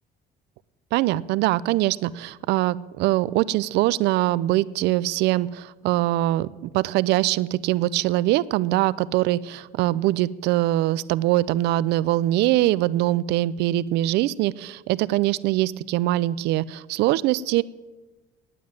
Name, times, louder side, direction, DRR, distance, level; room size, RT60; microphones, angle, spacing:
voice 1, 0.9-6.5 6.7-17.6, right 16 dB, 85° right, 19 dB, 0.4 m, -23 dB
9.4 x 9.3 x 8.7 m, 1.2 s
cardioid pair, 110°, 17 cm